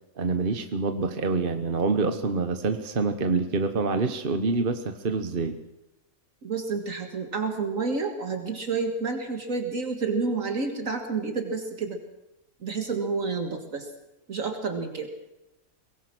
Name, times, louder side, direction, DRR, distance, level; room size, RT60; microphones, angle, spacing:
voice 1, 0.2-5.6, right 4 dB, 40° right, 8 dB, 1.3 m, -26 dB
voice 2, 6.4-12.0 12.6-13.9 14.3-15.1, right 4 dB, 65° right, 4 dB, 2.2 m, -29 dB
23.5 x 19.0 x 6.1 m, 0.95 s
omnidirectional pair, 1.5 m